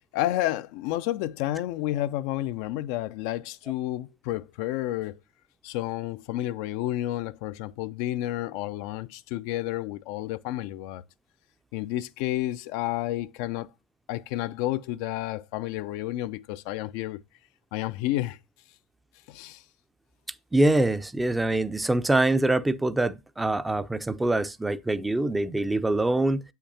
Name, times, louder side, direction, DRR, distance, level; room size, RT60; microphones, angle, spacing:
voice 1, 0.1-5.2 5.6-11.0 11.7-13.7 14.1-17.2 17.7-18.4 19.3-19.6, left 15 dB, 65° left, 0.3 m, -30 dB
voice 2, 20.5-26.4, right 2 dB, 10° right, 0.5 m, -24 dB
8.1 x 5.7 x 2.8 m
hypercardioid pair, 80°, 0 cm